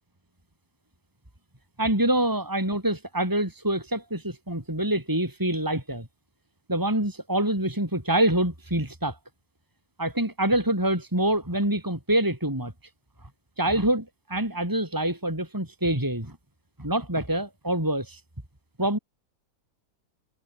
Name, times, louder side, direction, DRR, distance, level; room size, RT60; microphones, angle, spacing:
voice 1, 1.8-6.1 6.7-9.2 10.0-12.7 13.6-16.4 16.8-18.2 18.8-19.0, right 1 dB, 10° right, 4.6 m, -26 dB
omnidirectional pair, 1.7 m